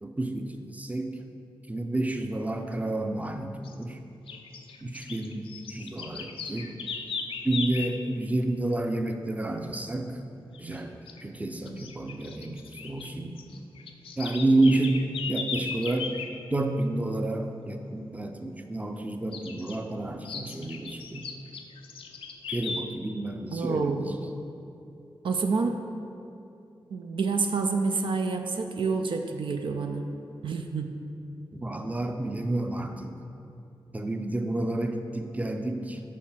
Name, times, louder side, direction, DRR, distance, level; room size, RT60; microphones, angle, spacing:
voice 1, 0.0-1.2 1.7-4.0 4.8-6.8 7.4-10.2 10.6-13.4 14.2-15.0 15.3-16.1 16.5-21.3 22.5-24.1 31.5-33.2 33.9-36.0, right 2 dB, 15° right, 5 dB, 0.5 m, -30 dB
sound 1, 3.6-3.8 4.3-8.0 10.5-10.8 11.1-11.2 11.7-13.1 13.4-16.3 19.3-19.8 20.2-22.8, left 5 dB, 85° left, 0.4 m, -37 dB
voice 2, 23.5-24.1 25.2-25.8 26.9-30.1 30.4-30.9, right 4 dB, 70° right, 5 dB, 0.4 m, -28 dB
5.0 x 4.2 x 5.6 m, 2.8 s
cardioid pair, 50°, 9 cm